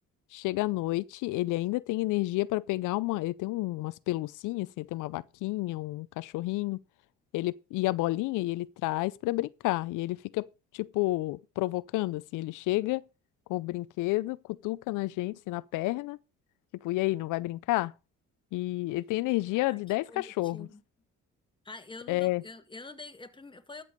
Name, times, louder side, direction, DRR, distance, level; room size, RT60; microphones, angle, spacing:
voice 1, 0.3-6.8 7.3-13.0 13.5-16.2 16.8-17.9 18.5-20.7 22.1-22.4, left 19 dB, 90° left, 0.5 m, -30 dB
voice 2, 20.1-20.8 21.6-23.8, left 3 dB, 15° left, 1.6 m, -46 dB
12.5 x 6.9 x 5.1 m
cardioid pair, 90°, 30 cm